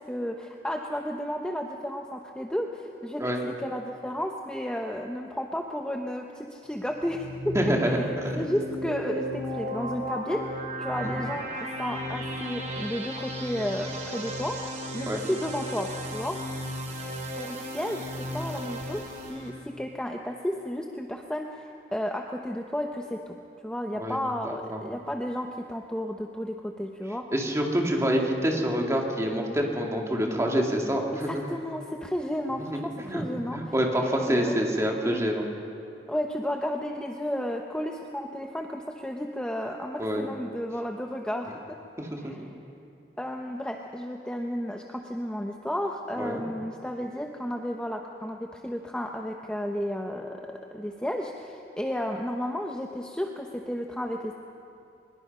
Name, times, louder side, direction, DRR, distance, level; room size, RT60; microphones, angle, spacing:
voice 1, 0.1-7.6 7.8-11.5 11.8-16.4 17.4-23.4 23.6-27.3 31.1-33.7 34.0-35.3 36.1-41.8 42.2-42.5 43.2-54.3, equal, 5° left, 2 dB, 0.8 m, -33 dB
sound 1, 7.0-19.5, equal, 45° right, 3.5 m, -35 dB
voice 2, 7.5-8.4 11.0-11.1 15.1-15.2 24.0-24.2 24.4-24.8 27.3-31.3 33.0-33.2 33.5-35.5 40.0-40.3 42.0-42.3 46.2-46.4, equal, 15° right, 0 dB, 2.4 m, -26 dB
23.5 x 21.5 x 5.5 m, 2.6 s
head